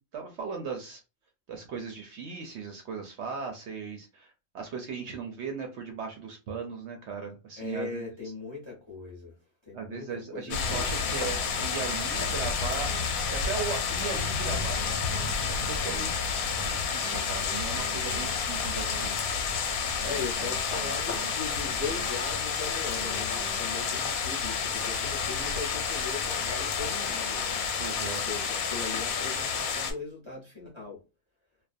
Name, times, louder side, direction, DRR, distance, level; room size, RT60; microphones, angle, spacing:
voice 1, 0.1-1.0 1.5-8.0 9.7-13.0 13.3-14.8 15.2-16.3 16.7-19.1 27.8-28.2, right 5 dB, 65° right, 0.7 m, -37 dB
voice 2, 7.6-9.4 9.7-10.9 16.6-16.7 17.1-17.2 20.0-27.7 28.0-31.0, left 4 dB, 30° left, 0.6 m, -39 dB
sound 1, 10.5-29.9, left 6 dB, 85° left, 1.0 m, -30 dB
sound 2, 11.7-12.3 12.9-13.1 14.0-15.3 15.9-16.1 17.0-18.3 18.9-19.1 20.0-21.3 21.9-22.1 23.0-23.6, right 7 dB, 90° right, 1.0 m, -43 dB
2.4 x 2.1 x 2.4 m
omnidirectional pair, 1.5 m